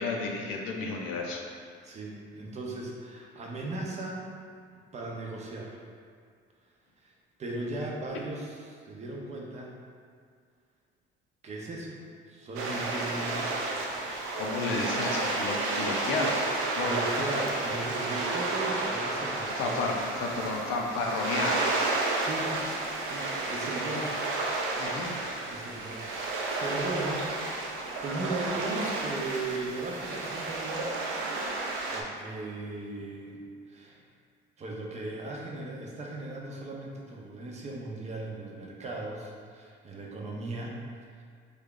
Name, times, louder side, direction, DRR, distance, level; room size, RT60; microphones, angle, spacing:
voice 1, 0.0-1.4 14.4-16.4 16.8-16.9 19.6-21.6 23.9-24.1 24.8-25.1, left 3 dB, 85° left, 1 dB, 0.6 m, -31 dB
voice 2, 1.8-4.3 4.9-5.8 7.0-7.1 7.4-9.7 11.4-12.0 12.3-13.6 16.8-19.8 22.1-22.5 23.0-24.2 25.5-27.2 27.7-31.1 31.9-33.4 33.7-34.0 34.6-40.8 41.2-41.3, right 2 dB, 35° right, -2 dB, 0.6 m, -37 dB
sound 1, 12.6-32.0, right 2 dB, 85° right, 0.5 m, -31 dB
3.3 x 2.3 x 3.7 m, 2.1 s
cardioid pair, 120°, 20 cm